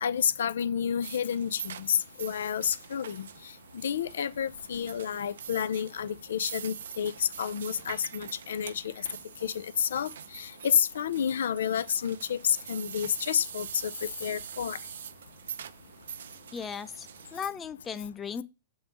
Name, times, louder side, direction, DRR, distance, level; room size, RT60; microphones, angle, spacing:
voice 1, 0.0-3.3 3.8-9.1 9.4-13.9 14.2-14.8, left 8 dB, 85° left, 0.4 m, -30 dB
sound 1, 1.0-17.5, right 8 dB, 85° right, 0.4 m, -44 dB
voice 2, 16.5-18.4, left 6 dB, 20° left, 0.4 m, -37 dB
6.3 x 3.1 x 5.2 m
hypercardioid pair, 140°, 0 cm